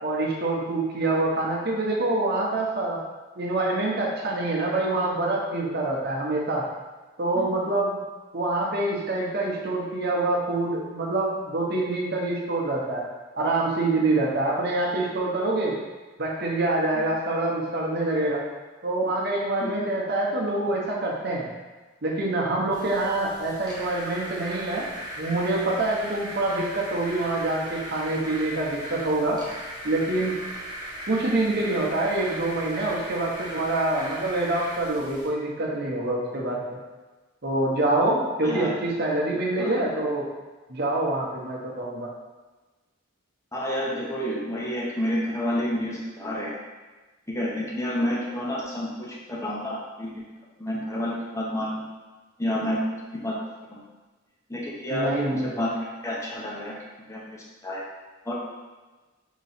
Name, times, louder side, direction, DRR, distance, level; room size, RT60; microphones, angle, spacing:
voice 1, 0.0-3.0 3.4-6.6 7.2-8.0 8.3-13.0 13.4-15.8 16.2-18.4 18.8-21.5 22.0-24.9 25.2-29.4 29.8-30.4 31.1-36.8 37.4-40.3 40.7-42.1 54.9-55.5, right 2 dB, 50° right, -3 dB, 0.9 m, -26 dB
sound 1, 22.7-35.3, right 1 dB, 20° right, 0.9 m, -38 dB
voice 2, 43.5-46.6 47.3-50.1 50.6-51.9 52.4-52.8 53.2-53.4 53.7-53.8 54.5-55.7 56.0-56.7 57.1-57.8 58.3-58.4, left 1 dB, 15° left, -4 dB, 0.7 m, -29 dB
4.0 x 3.0 x 4.2 m, 1.3 s
head